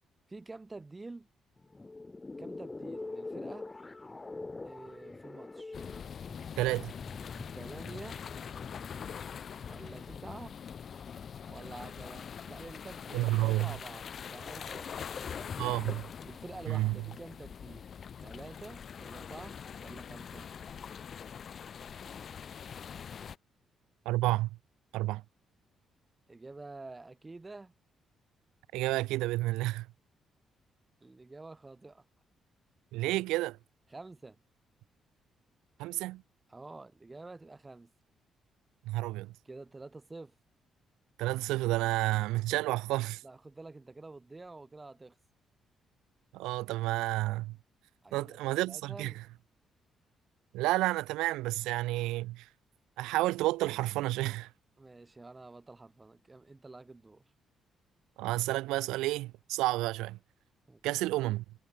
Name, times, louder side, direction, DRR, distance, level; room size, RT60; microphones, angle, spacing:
voice 1, 0.3-1.3 2.4-3.7 4.6-5.8 7.5-8.3 9.6-10.6 11.5-15.6 16.2-17.9 18.2-20.5 26.3-27.7 31.0-32.1 33.9-34.4 36.5-37.9 39.5-40.4 43.2-45.2 48.0-49.2 54.8-57.2 60.7-60.8, right 3 dB, 25° right, 7.1 m, -48 dB
sound 1, 1.6-10.3, left 3 dB, 25° left, 2.1 m, -45 dB
sound 2, 5.7-23.4, left 7 dB, 55° left, 1.5 m, -43 dB
voice 2, 6.6-6.9 13.1-13.7 15.6-16.1 16.7-17.0 24.0-24.6 24.9-25.2 28.7-29.9 32.9-33.6 35.8-36.2 38.8-39.3 41.2-43.2 46.3-47.6 48.1-49.1 50.5-52.5 53.0-54.5 58.2-60.2 60.8-61.4, right 18 dB, 75° right, 1.1 m, -30 dB
hypercardioid pair, 40°, 0 cm